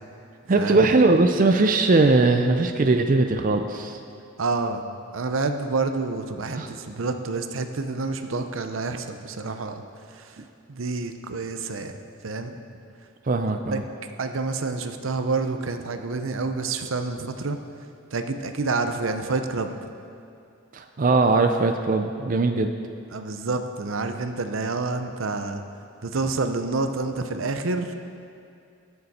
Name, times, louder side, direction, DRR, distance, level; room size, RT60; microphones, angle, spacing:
voice 1, 0.5-4.0 6.5-6.7 13.3-13.8 20.7-22.7, right 3 dB, 40° right, 6 dB, 0.5 m, -20 dB
voice 2, 4.4-4.8 5.1-9.8 10.7-11.9 12.2-12.6 13.7-13.8 14.2-17.6 18.1-19.7 23.1-25.6 26.0-27.9, right 3 dB, 80° right, 7 dB, 0.7 m, -28 dB
19.5 x 6.8 x 4.3 m, 2.5 s
head